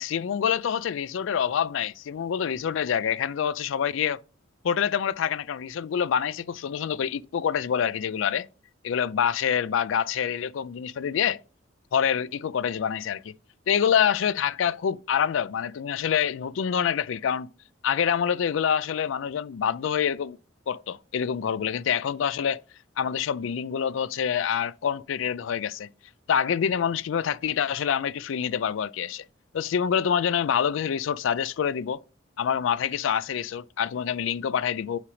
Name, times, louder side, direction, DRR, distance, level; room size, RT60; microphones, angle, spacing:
voice 1, 0.0-4.2 4.6-8.5 8.8-11.4 11.9-13.3 13.7-17.5 17.8-20.4 20.7-22.6 23.0-25.9 26.3-29.2 29.5-32.0 32.4-35.0, left 8 dB, 65° left, 0.3 m, -26 dB
8.4 x 3.3 x 4.9 m
head